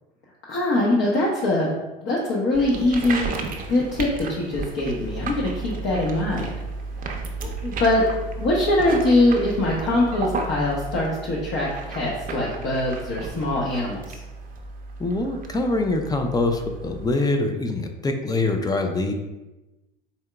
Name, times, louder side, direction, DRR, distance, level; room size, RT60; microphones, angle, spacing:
voice 1, 0.5-1.7 2.0-3.3 3.7-6.5 7.4-8.1 8.4-14.2, left 1 dB, 40° left, -4 dB, 0.9 m, -23 dB
sound 1, 2.5-17.1, right 3 dB, 30° right, 0.7 m, -33 dB
voice 2, 15.0-19.1, left 2 dB, 15° left, 5 dB, 0.5 m, -24 dB
4.3 x 3.6 x 2.2 m, 1.1 s
hypercardioid pair, 75°, 29 cm